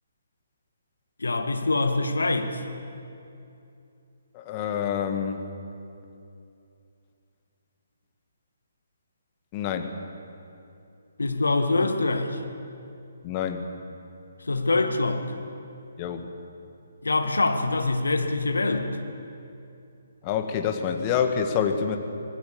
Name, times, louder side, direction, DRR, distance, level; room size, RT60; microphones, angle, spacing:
voice 1, 1.2-2.6 11.2-12.4 14.5-15.3 17.0-18.9, left 3 dB, 70° left, 6 dB, 2.1 m, -24 dB
voice 2, 4.3-5.4 9.5-9.9 13.2-13.7 16.0-16.3 20.2-22.0, left 7 dB, 25° left, 5 dB, 1.8 m, -27 dB
26.0 x 19.0 x 7.1 m, 2.7 s
figure-of-eight pair, 135°, 0 cm